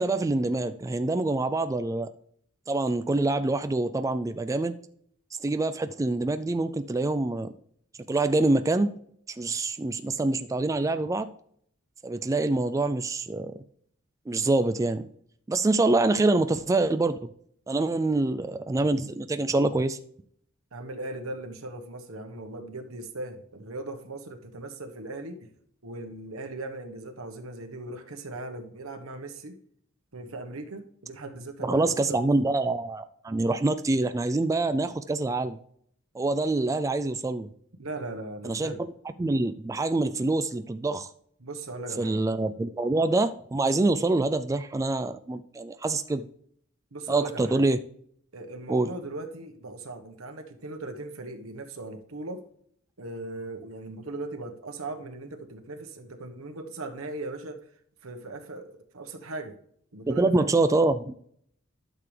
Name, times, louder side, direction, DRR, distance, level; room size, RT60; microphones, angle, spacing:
voice 1, 0.0-2.1 2.7-4.7 5.4-7.5 8.1-8.9 9.4-11.3 12.0-13.5 14.3-15.1 15.5-17.2 17.7-20.0 31.6-35.6 36.1-37.5 38.4-38.7 39.2-41.1 42.0-46.3 47.1-47.8 48.7-48.9 60.1-61.1, right 2 dB, 15° right, 9 dB, 0.3 m, -25 dB
voice 2, 20.7-25.5 25.8-29.6 30.1-32.3 37.8-38.8 41.4-42.2 46.9-47.7 48.3-52.4 53.0-57.7 58.0-59.6 59.9-60.5, right 2 dB, 80° right, 6 dB, 1.2 m, -38 dB
12.0 x 6.8 x 3.3 m, 0.65 s
head